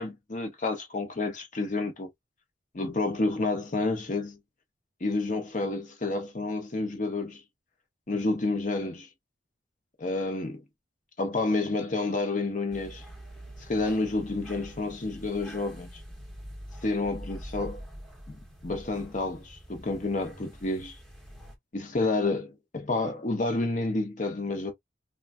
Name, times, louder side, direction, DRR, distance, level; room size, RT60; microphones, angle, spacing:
voice 1, 0.0-2.1 2.7-4.4 5.0-7.4 8.1-9.1 10.0-10.6 11.2-13.0 13.7-16.0 16.8-17.8 18.3-18.4 18.6-21.0 21.7-24.7, left 2 dB, 40° left, 0.9 m, -29 dB
sound 1, 12.7-21.6, equal, 5° left, 0.8 m, -45 dB
3.2 x 2.3 x 2.3 m
head